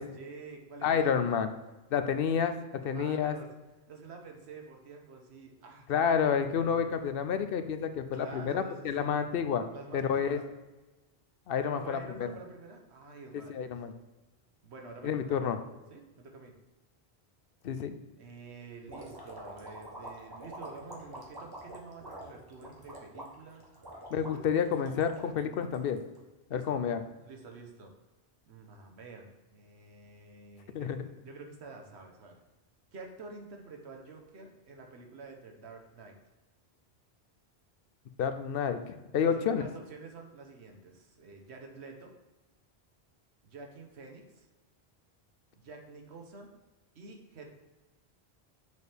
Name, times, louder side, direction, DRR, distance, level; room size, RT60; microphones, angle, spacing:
voice 1, 0.0-1.4 2.2-2.5 2.8-3.5 3.9-5.9 6.6-7.0 8.1-9.1 9.7-10.5 11.6-13.8 14.6-15.6 15.9-16.5 18.2-23.6 24.3-24.5 26.5-26.8 27.2-27.9 28.5-32.4 32.9-36.2 39.2-42.1 43.4-44.5 45.5-46.5 46.9-47.5, right 3 dB, 90° right, 3 dB, 1.2 m, -48 dB
voice 2, 0.8-1.5 1.9-2.5 2.8-3.3 5.9-9.6 9.9-10.4 11.5-12.0 13.5-13.9 15.0-15.6 17.6-18.0 24.1-26.0 26.5-27.0 30.7-31.0 38.2-39.6, left 7 dB, 65° left, 9 dB, 0.7 m, -29 dB
sound 1, 18.9-26.2, right 1 dB, 20° right, 1.1 m, -46 dB
6.5 x 4.3 x 3.4 m, 1.1 s
omnidirectional pair, 1.1 m